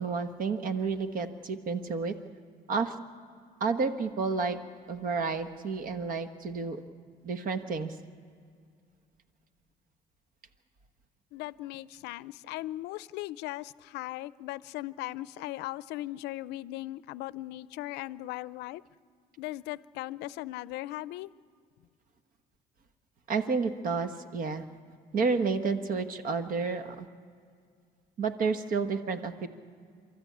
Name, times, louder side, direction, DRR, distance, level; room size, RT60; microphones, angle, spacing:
voice 1, 0.0-2.1 2.7-2.9 3.6-4.6 4.9-6.8 7.2-7.9 23.3-24.6 25.1-27.1 28.2-29.5, right 4 dB, 55° right, 9 dB, 1.2 m, -30 dB
voice 2, 11.3-18.8 19.4-21.3, left 16 dB, 90° left, 18 dB, 0.5 m, -38 dB
30.0 x 13.0 x 8.5 m, 2.2 s
cardioid pair, 110°, 17 cm